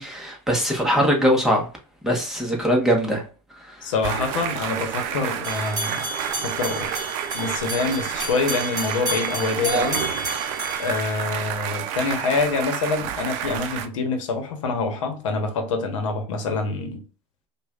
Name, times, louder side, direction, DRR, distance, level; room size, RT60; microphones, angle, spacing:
voice 1, 0.0-1.7 2.0-3.2 3.6-3.9, equal, 5° right, 1.1 m, -21 dB
voice 2, 3.8-6.1 6.4-7.0 7.3-10.0 10.8-17.0, left 4 dB, 90° left, 1.0 m, -26 dB
sound 1, 4.0-13.9, right 9 dB, 55° right, 0.5 m, -29 dB
sound 2, 5.4-11.7, right 1 dB, 25° right, 1.9 m, -32 dB
5.0 x 2.4 x 2.4 m
supercardioid pair, 125°, 16 cm